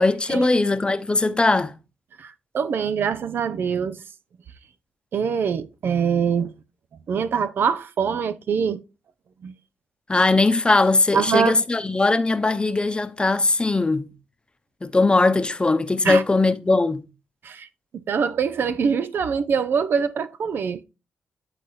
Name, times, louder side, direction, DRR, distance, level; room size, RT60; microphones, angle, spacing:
voice 1, 0.0-1.7 10.1-14.1 14.8-17.0, left 3 dB, 25° left, 0.8 m, -20 dB
voice 2, 2.2-4.0 5.1-6.5 7.1-8.8 9.4-9.5 11.1-11.6 16.0-16.2 17.4-17.7 18.1-20.8, right 6 dB, 65° right, 0.6 m, -24 dB
9.9 x 4.1 x 3.2 m
supercardioid pair, 55°, 4 cm